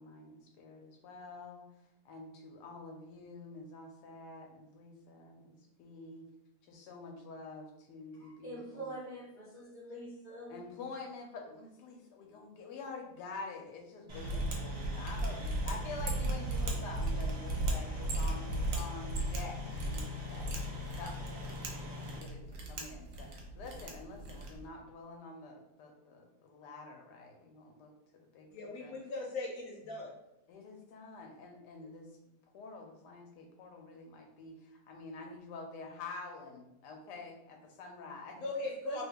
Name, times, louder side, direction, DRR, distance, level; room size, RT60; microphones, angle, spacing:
voice 1, 0.0-1.7 2.0-6.3 6.6-8.9 10.5-15.3 15.6-28.5 28.8-28.9 30.5-32.1 32.5-39.0, left 3 dB, 90° left, 2 dB, 1.2 m, -48 dB
voice 2, 8.2-10.6, right 1 dB, 10° right, -7 dB, 0.7 m, -45 dB
sound 1, 14.1-22.2, left 1 dB, 45° right, 0.3 m, -43 dB
Mechanisms, 14.2-24.6, right 2 dB, 70° right, 1.1 m, -36 dB
voice 3, 28.5-30.1 31.8-31.9 38.4-39.0, left 2 dB, 70° left, -1 dB, 1.0 m, -39 dB
2.8 x 2.2 x 3.4 m, 0.86 s
omnidirectional pair, 1.7 m